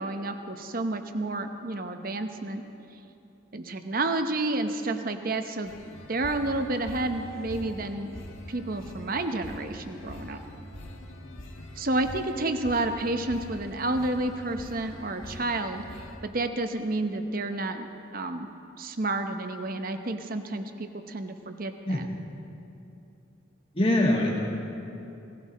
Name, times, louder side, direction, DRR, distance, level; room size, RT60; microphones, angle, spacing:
voice 1, 0.0-2.6 3.5-5.8 6.1-8.2 8.5-10.4 11.8-15.8 16.2-18.5 18.8-22.1, right 2 dB, 45° right, 7 dB, 0.8 m, -30 dB
sound 1, 5.7-16.2, left 1 dB, 85° left, 1.5 m, -43 dB
voice 2, 23.7-24.5, left 1 dB, 30° left, -1 dB, 1.7 m, -24 dB
18.5 x 15.5 x 4.2 m, 2.8 s
head